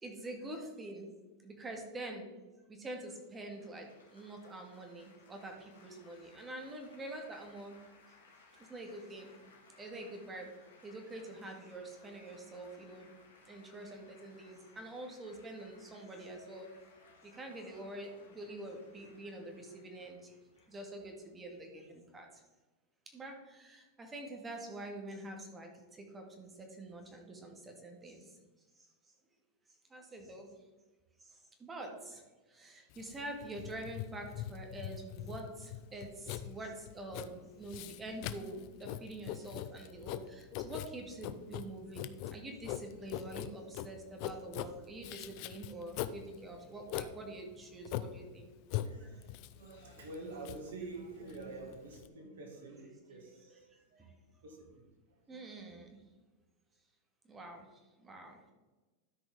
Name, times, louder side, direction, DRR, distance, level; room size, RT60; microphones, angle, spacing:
voice 1, 0.0-1.1 1.4-2.3 2.7-7.8 8.7-9.3 9.8-10.5 10.8-13.1 13.5-16.7 17.3-20.3 20.7-22.3 23.1-28.2 29.9-30.5 31.6-32.2 32.5-48.5 55.3-56.0 57.3-57.7 58.0-58.4, right 1 dB, 20° right, 2 dB, 1.9 m, -46 dB
Laughter / Applause / Chatter, 3.1-22.2, left 4 dB, 90° left, 2.0 m, -63 dB
Writing, 32.9-52.1, left 12 dB, 55° left, 0.5 m, -42 dB
voice 2, 48.8-55.5, right 3 dB, 75° right, 2 dB, 2.2 m, -48 dB
12.5 x 5.1 x 3.7 m, 1.2 s
hypercardioid pair, 105°, 0 cm